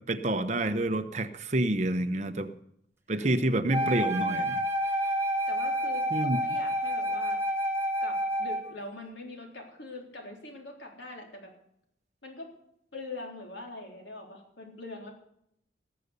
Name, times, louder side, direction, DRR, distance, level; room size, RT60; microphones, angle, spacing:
voice 1, 0.0-2.5 3.1-4.6 6.1-6.4, right 1 dB, 40° right, 8 dB, 0.9 m, -28 dB
voice 2, 3.7-4.0 5.5-7.4 8.0-11.5 12.2-12.5 12.9-15.1, left 2 dB, 80° left, 1 dB, 3.7 m, -43 dB
Wind instrument woodwind instrument, 3.7-8.8, equal, 15° right, 1.6 m, -29 dB
19.0 x 6.9 x 8.1 m, 0.73 s
head